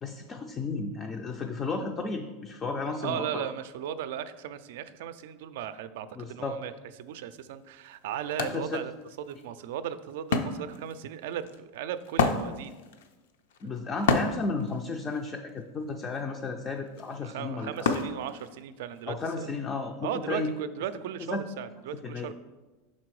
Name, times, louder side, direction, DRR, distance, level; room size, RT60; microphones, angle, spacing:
voice 1, 0.0-3.5 6.2-6.6 8.4-8.8 13.6-17.7 19.1-20.5 21.2-21.4 22.0-22.3, left 3 dB, 20° left, 3 dB, 0.3 m, -33 dB
voice 2, 3.0-6.7 7.0-8.9 9.2-12.8 17.2-19.5 20.0-22.3, right 10 dB, 65° right, 12 dB, 0.4 m, -36 dB
Wood, 7.3-7.4 7.8-19.0, left 4 dB, 90° left, 0.6 m, -32 dB
5.9 x 4.2 x 4.7 m, 1.2 s
supercardioid pair, 165°, 0 cm